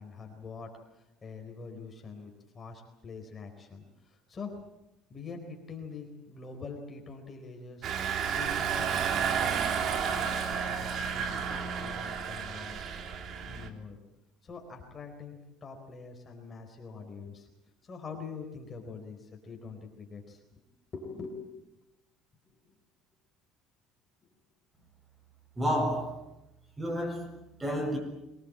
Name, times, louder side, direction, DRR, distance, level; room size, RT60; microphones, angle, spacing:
voice 1, 0.0-4.6 5.1-7.9 8.3-12.9 13.5-14.0 14.4-17.5 17.8-20.4 20.9-21.5 22.7-22.8, left 4 dB, 30° left, 4.1 m, -44 dB
Engine, 7.8-13.7, right 7 dB, 50° right, 2.7 m, -31 dB
voice 2, 25.6-26.2 26.8-28.0, equal, 15° right, 7.3 m, -31 dB
24.0 x 19.0 x 8.7 m
cardioid pair, 120°, 0 cm